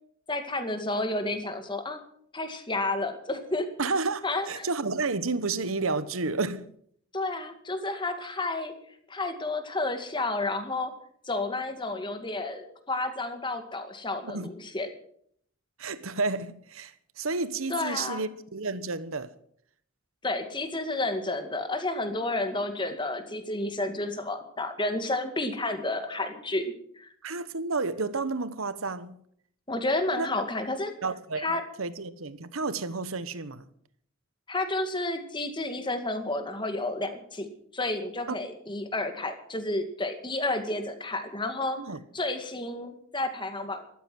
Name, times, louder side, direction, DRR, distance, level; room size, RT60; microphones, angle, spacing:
voice 1, 0.3-2.0 2.3-3.7 4.2-4.7 7.1-8.7 9.1-10.9 11.3-14.9 17.7-18.3 20.2-27.1 29.7-30.9 31.4-31.6 34.5-37.5 37.7-41.8 42.1-43.8, left 2 dB, 25° left, 2.1 m, -31 dB
voice 2, 3.8-6.7 14.2-14.5 15.8-19.3 27.2-29.2 30.2-30.3 31.0-31.5 31.8-33.7 38.3-38.4 41.8-42.0, right 3 dB, 80° right, 1.1 m, -31 dB
14.0 x 13.0 x 7.7 m
head